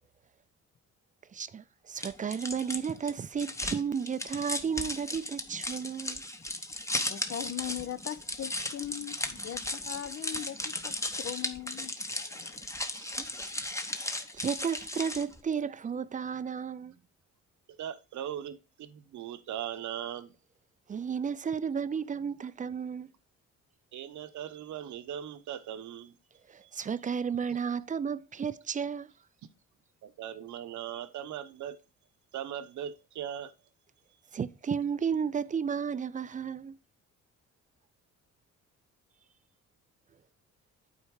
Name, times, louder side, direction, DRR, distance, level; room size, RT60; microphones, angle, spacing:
voice 1, 1.3-6.2 12.9-13.5 14.0-17.0 20.9-23.1 26.5-29.1 34.3-36.8, right 7 dB, 25° right, 0.4 m, -33 dB
sound 1, 2.0-15.4, left 1 dB, 10° left, 0.8 m, -36 dB
voice 2, 6.9-11.9 12.2-12.7, left 11 dB, 50° left, 0.7 m, -40 dB
voice 3, 17.8-20.3 23.9-26.2 26.6-26.7 30.0-31.8 32.3-33.5, right 10 dB, 70° right, 0.9 m, -39 dB
8.6 x 4.4 x 4.7 m
cardioid pair, 90°, 30 cm